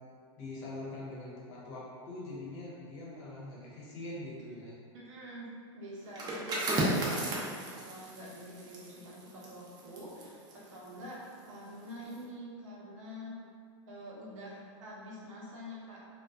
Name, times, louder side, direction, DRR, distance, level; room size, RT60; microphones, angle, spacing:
voice 1, 0.4-4.8, left 2 dB, 65° left, -6 dB, 0.9 m, -43 dB
voice 2, 4.9-11.2 11.5-13.4 13.9-16.1, equal, 75° right, -5 dB, 0.7 m, -46 dB
sound 1, 6.1-11.6 11.9-12.2, right 1 dB, 25° right, 0.5 m, -35 dB
2.5 x 2.2 x 2.3 m, 2.2 s
hypercardioid pair, 120°, 16 cm